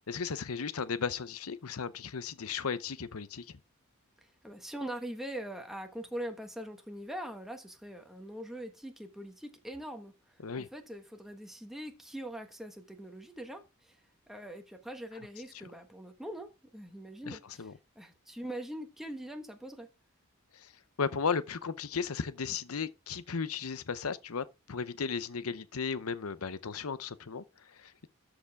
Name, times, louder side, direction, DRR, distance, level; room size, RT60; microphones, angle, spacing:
voice 1, 0.1-3.6 10.4-10.7 17.2-17.7 20.5-20.7 21.0-28.1, left 5 dB, 85° left, 0.7 m, -35 dB
voice 2, 4.2-14.0 14.3-17.7 17.9-19.9, right 1 dB, ahead, 1.3 m, -42 dB
13.0 x 5.0 x 3.5 m
head